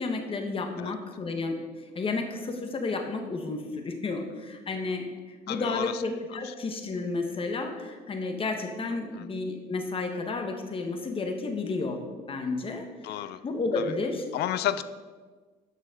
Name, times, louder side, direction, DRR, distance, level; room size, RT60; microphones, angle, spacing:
voice 1, 0.0-1.6 1.9-12.0 12.3-13.1 13.4-14.2, left 3 dB, 35° left, 4 dB, 1.4 m, -32 dB
voice 2, 5.5-6.0 6.4-6.5 9.1-9.3 13.0-13.4 13.8-13.9 14.3-14.8, left 12 dB, 75° left, 14 dB, 0.5 m, -31 dB
12.5 x 7.3 x 3.8 m, 1.4 s
cardioid pair, 110°, 17 cm